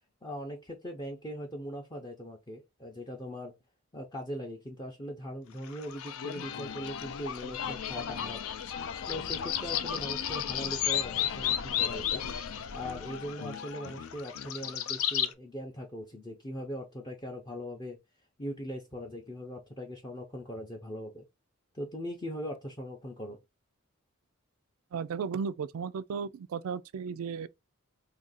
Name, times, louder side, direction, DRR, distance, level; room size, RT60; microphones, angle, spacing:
voice 1, 0.2-3.5 3.9-8.4 9.1-12.2 12.7-18.0 18.4-21.2 21.7-23.4, equal, 20° left, 0.5 m, -40 dB
sound 1, 5.6-15.3, left 9 dB, 70° left, 0.4 m, -34 dB
voice 2, 24.9-27.5, right 6 dB, 75° right, 0.3 m, -35 dB
2.8 x 2.5 x 3.9 m
head